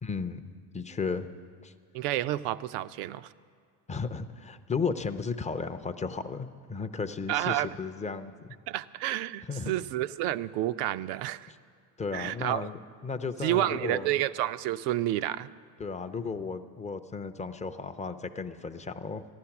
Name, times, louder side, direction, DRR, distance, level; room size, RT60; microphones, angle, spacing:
voice 1, 0.0-1.3 1.6-1.7 3.9-8.3 9.5-9.7 11.5-11.6 12.0-12.7 13.0-14.1 15.8-19.3, left 5 dB, 15° left, 9 dB, 0.4 m, -34 dB
voice 2, 1.9-3.3 7.3-7.7 8.7-11.5 12.1-12.7 13.4-15.5, right 14 dB, 75° right, 14 dB, 0.6 m, -30 dB
14.5 x 11.5 x 5.9 m, 2.2 s
supercardioid pair, 85°, 48 cm